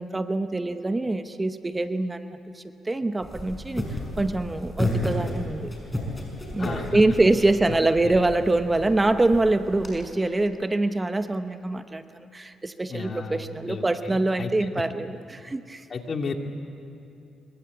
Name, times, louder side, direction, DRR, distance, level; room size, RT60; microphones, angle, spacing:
voice 1, 0.0-3.9 4.2-5.7 6.5-15.8, right 2 dB, 20° right, 9 dB, 0.9 m, -24 dB
sound 1, 3.2-9.9, left 1 dB, 15° left, 6.5 m, -33 dB
voice 2, 6.6-7.0 8.0-8.1 12.9-14.7 15.9-16.4, left 5 dB, 45° left, 4 dB, 2.5 m, -33 dB
25.5 x 23.5 x 8.4 m, 2.8 s
cardioid pair, 90°, 0 cm